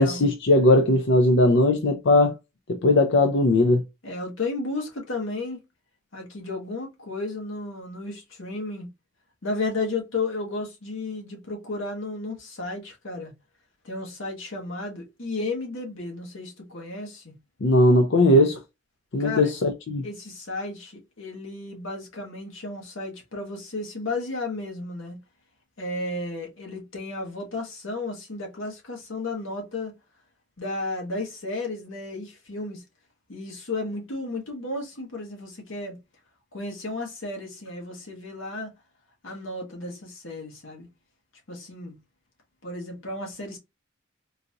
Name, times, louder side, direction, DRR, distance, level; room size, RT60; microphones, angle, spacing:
voice 1, 0.0-2.3 2.7-3.8 17.6-18.6 19.1-20.0, left 1 dB, 65° left, 0.5 m, -19 dB
voice 2, 4.0-5.6 6.1-8.9 9.4-13.3 13.8-17.3 19.2-19.5 20.0-25.2 25.8-29.9 30.6-32.8 33.3-36.0 36.5-38.7 39.2-40.9 41.5-42.0 42.6-43.6, left 2 dB, 80° left, 1.3 m, -33 dB
3.9 x 2.5 x 2.8 m
head